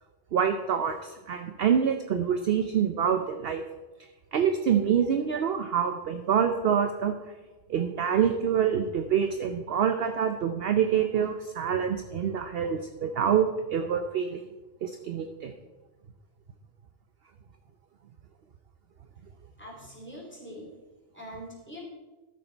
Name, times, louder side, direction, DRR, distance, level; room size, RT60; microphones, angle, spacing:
voice 1, 0.3-3.6 4.3-7.2 7.7-14.4 14.8-15.5, right 8 dB, 60° right, 7 dB, 0.7 m, -26 dB
voice 2, 19.5-20.7 21.1-21.9, equal, 10° left, -3 dB, 2.7 m, -43 dB
13.5 x 6.5 x 4.4 m, 1.2 s
omnidirectional pair, 1.3 m